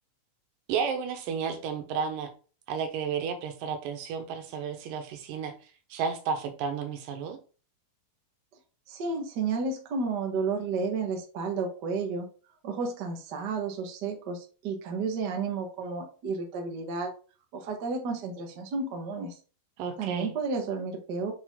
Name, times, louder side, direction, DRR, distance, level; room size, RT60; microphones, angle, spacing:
voice 1, 0.7-2.3 2.7-5.6 5.9-7.4 19.8-20.3, right 6 dB, 80° right, 2.5 m, -32 dB
voice 2, 8.9-12.3 12.6-17.1 17.5-19.4 20.0-21.3, right 4 dB, 55° right, 1.1 m, -32 dB
6.9 x 4.4 x 3.7 m
omnidirectional pair, 4.0 m